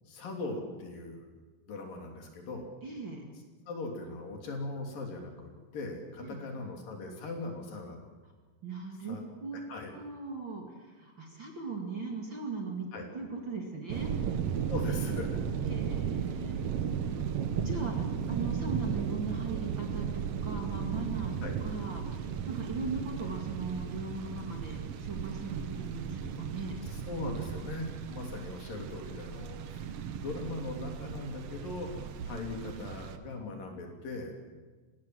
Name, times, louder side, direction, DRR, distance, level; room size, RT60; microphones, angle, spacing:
voice 1, 0.1-1.3 1.7-2.7 3.7-8.1 9.1-9.2 9.5-9.9 12.9-13.1 14.7-15.4 21.4-21.6 27.1-29.9 30.2-31.9 32.2-34.3, left 2 dB, 65° left, 2 dB, 4.7 m, -39 dB
voice 2, 2.8-3.2 6.2-6.4 8.6-9.6 9.9-14.1 15.7-16.7 17.6-18.0 18.3-26.8, right 4 dB, 35° right, 1 dB, 2.6 m, -39 dB
sound 1, 13.9-33.2, right 7 dB, 80° right, 1.3 m, -35 dB
24.0 x 19.0 x 7.8 m, 1.3 s
omnidirectional pair, 4.4 m